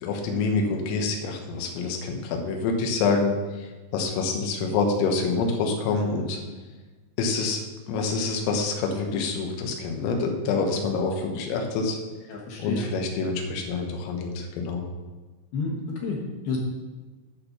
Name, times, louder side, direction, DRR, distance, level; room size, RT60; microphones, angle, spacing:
voice 1, 0.0-3.4 3.9-6.4 7.2-7.6 7.9-12.0 12.6-14.8, left 4 dB, 90° left, 2 dB, 3.8 m, -26 dB
voice 2, 12.3-12.9 15.5-15.8 16.0-16.6, left 4 dB, 65° left, -2 dB, 2.6 m, -30 dB
11.5 x 4.5 x 6.7 m, 1.3 s
omnidirectional pair, 5.8 m